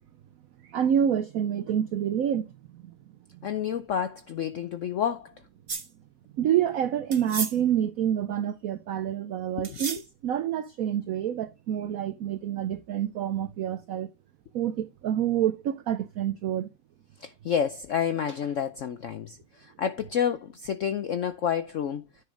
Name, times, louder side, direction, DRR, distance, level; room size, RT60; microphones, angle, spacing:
voice 1, 0.6-2.9 6.4-14.1 14.5-16.7, right 10 dB, 85° right, 0.7 m, -28 dB
voice 2, 3.4-5.3 9.6-9.8 17.2-22.0, left 8 dB, 85° left, 0.6 m, -29 dB
sound 1, 5.7-5.9 7.1-7.6 9.6-10.0, right 5 dB, 35° right, 1.2 m, -32 dB
10.5 x 6.2 x 3.7 m
omnidirectional pair, 2.1 m